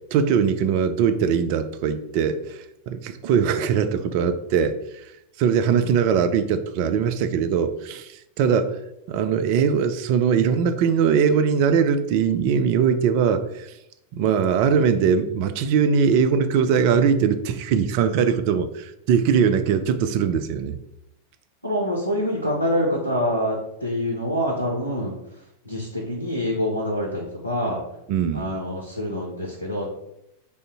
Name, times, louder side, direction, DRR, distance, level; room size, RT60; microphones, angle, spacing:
voice 1, 0.1-4.8 5.4-8.8 9.1-13.7 14.1-20.8 28.1-28.5, right 7 dB, 45° right, 9 dB, 0.3 m, -21 dB
voice 2, 21.6-25.1 25.7-27.8 28.3-29.9, equal, 90° left, -1 dB, 0.6 m, -26 dB
3.5 x 2.6 x 4.0 m, 0.83 s
figure-of-eight pair, 90°, 0 cm